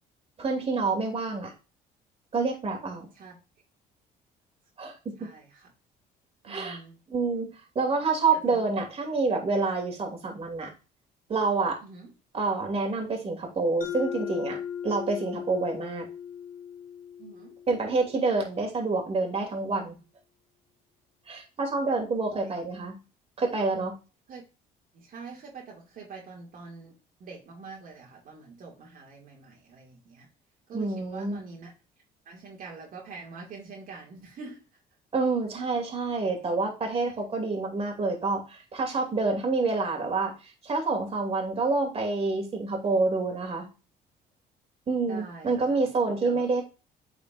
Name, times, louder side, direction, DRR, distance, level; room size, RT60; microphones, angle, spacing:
voice 1, 0.4-1.5 2.3-3.1 4.8-5.3 6.4-6.8 7.1-7.5 7.7-10.7 11.3-11.8 12.3-14.6 14.8-16.1 17.7-20.0 21.3-22.9 23.4-24.0 30.7-31.4 35.1-40.3 40.6-43.7 44.9-46.6, right 3 dB, 35° right, 2 dB, 2.6 m, -27 dB
voice 2, 5.2-5.7 6.4-7.0 8.3-8.7 11.8-12.1 17.2-17.6 22.3-22.6 24.3-24.4 24.9-30.3 30.7-31.7 32.3-34.6 45.0-45.9 46.2-46.4, right 4 dB, 55° right, -2 dB, 2.3 m, -45 dB
Mallet percussion, 13.8-18.4, left 8 dB, 55° left, 1.4 m, -38 dB
9.0 x 5.0 x 2.6 m, 0.31 s
cardioid pair, 110°, 17 cm